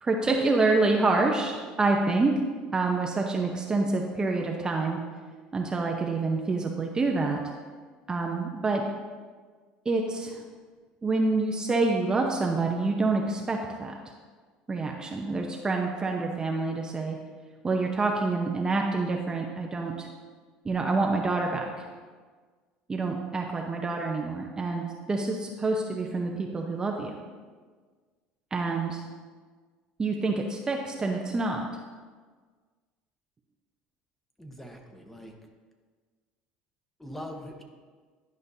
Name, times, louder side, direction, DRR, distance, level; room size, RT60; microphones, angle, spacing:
voice 1, 0.0-2.3 2.7-5.0 5.5-7.4 8.1-8.8 9.9-10.4 11.0-13.9 14.7-17.2 17.6-20.1 20.6-21.9 22.9-27.1 28.5-29.0 30.0-31.7, right 3 dB, 20° right, 1 dB, 0.7 m, -27 dB
voice 2, 34.4-35.3 37.0-37.6, equal, 5° left, 3 dB, 1.0 m, -42 dB
11.0 x 5.2 x 2.7 m, 1.5 s
supercardioid pair, 100°, 3 cm